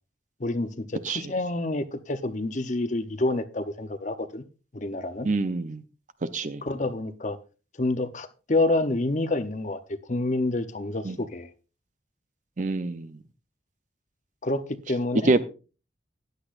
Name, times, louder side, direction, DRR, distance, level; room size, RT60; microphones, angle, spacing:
voice 1, 0.4-4.4 4.7-5.3 6.6-7.4 7.8-11.5 14.4-15.3, left 2 dB, 40° left, 0.7 m, -28 dB
voice 2, 5.2-5.8 6.3-6.6 11.0-11.2 12.6-13.1 15.2-15.4, right 3 dB, 40° right, 0.6 m, -25 dB
14.5 x 10.0 x 2.5 m
head